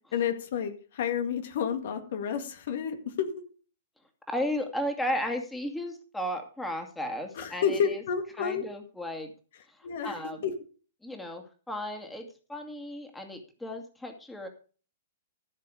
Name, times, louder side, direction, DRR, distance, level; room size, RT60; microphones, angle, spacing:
voice 1, 0.1-3.3 7.4-8.6 9.8-10.1 10.4-10.5, left 7 dB, 60° left, 7 dB, 2.0 m, -30 dB
voice 2, 4.3-8.0 8.3-9.3 9.7-10.4 11.0-14.5, equal, 5° left, 4 dB, 2.4 m, -34 dB
15.0 x 6.7 x 5.0 m, 0.38 s
hypercardioid pair, 115°, 0 cm